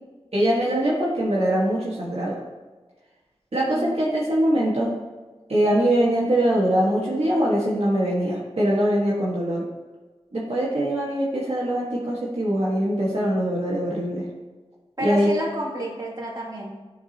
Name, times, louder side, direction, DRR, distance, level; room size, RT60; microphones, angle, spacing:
voice 1, 0.3-2.3 3.5-4.9 5.5-9.6 10.3-14.2 15.0-15.3, right 1 dB, 65° right, -6 dB, 1.6 m, -22 dB
voice 2, 3.7-4.0 15.0-16.7, right 1 dB, 35° right, -5 dB, 2.5 m, -30 dB
11.5 x 4.8 x 2.9 m, 1.3 s
wide cardioid pair, 50°, 11 cm